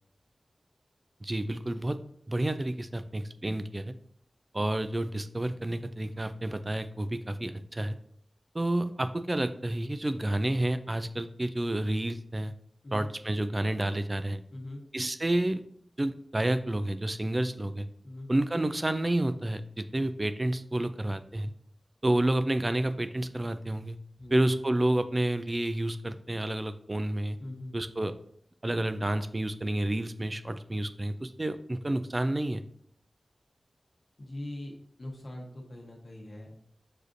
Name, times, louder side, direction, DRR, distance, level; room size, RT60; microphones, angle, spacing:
voice 1, 1.2-2.0 2.3-3.9 4.5-7.9 8.5-12.5 12.9-14.4 14.9-15.6 16.0-17.9 18.3-21.5 22.0-24.0 24.3-27.4 27.7-28.1 28.6-32.6, right 1 dB, 30° right, 11 dB, 0.3 m, -30 dB
voice 2, 14.5-14.8 18.0-18.3 24.2-24.4 27.4-27.8 34.2-36.5, left 1 dB, 50° left, -1 dB, 0.9 m, -42 dB
6.5 x 2.4 x 2.5 m, 0.65 s
cardioid pair, 55°, 0 cm